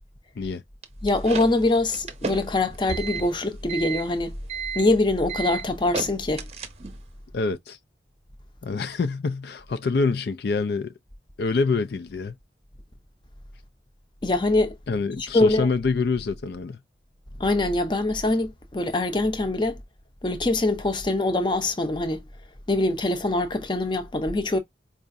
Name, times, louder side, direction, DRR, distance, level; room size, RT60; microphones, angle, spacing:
sound 1, 0.8-7.1, right 5 dB, 35° right, 0.7 m, -33 dB
voice 1, 1.0-4.4 4.7-6.5 14.2-14.8 15.2-15.7 17.4-19.8 20.2-22.2 22.7-24.6, left 2 dB, 25° left, 0.6 m, -23 dB
voice 2, 7.3-7.8 8.6-10.9 11.4-12.3 14.9-16.8, left 4 dB, 65° left, 0.4 m, -26 dB
4.8 x 2.4 x 2.6 m
head